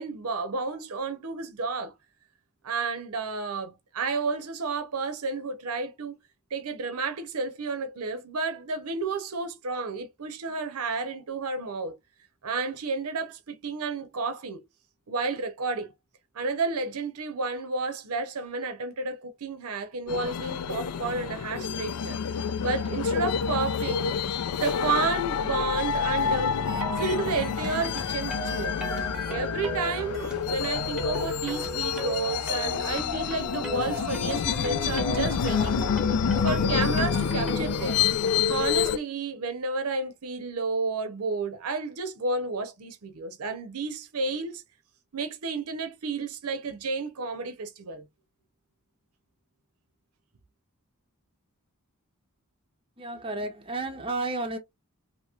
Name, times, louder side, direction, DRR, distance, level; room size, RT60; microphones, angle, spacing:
voice 1, 0.0-1.9 2.6-6.2 6.5-12.0 12.4-14.6 15.1-15.9 16.3-24.2 24.5-26.6 27.0-28.8 29.3-35.9 36.4-38.0 38.5-44.6 45.1-48.0, right 3 dB, 80° right, 0.7 m, -31 dB
sound 1, 20.1-39.0, left 7 dB, 85° left, 0.4 m, -28 dB
sound 2, 26.6-38.0, right 1 dB, 5° right, 0.9 m, -37 dB
voice 2, 53.0-54.6, right 2 dB, 25° right, 0.6 m, -32 dB
3.0 x 2.8 x 2.3 m
head